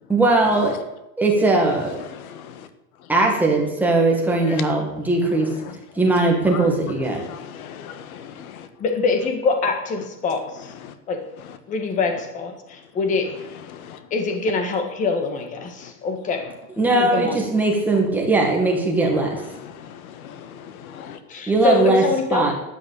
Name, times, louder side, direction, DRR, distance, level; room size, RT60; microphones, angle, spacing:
voice 1, 0.1-0.8 1.2-2.0 3.1-5.5 6.0-7.2 16.8-19.4 21.5-22.0 22.3-22.5, right 2 dB, 5° right, -1 dB, 2.0 m, -19 dB
voice 2, 2.0-2.7 4.4-4.6 5.6-5.8 6.5-6.7 7.0-8.7 10.8-10.9 13.7-14.0 15.8-15.9 19.5-21.2, left 9 dB, 70° left, 11 dB, 1.7 m, -38 dB
voice 3, 8.8-10.7 11.1-11.2 11.7-13.3 14.1-16.4 16.8-17.4 21.3-22.5, left 4 dB, 15° left, 5 dB, 1.6 m, -24 dB
13.0 x 9.9 x 8.6 m, 0.91 s
supercardioid pair, 180°, 44 cm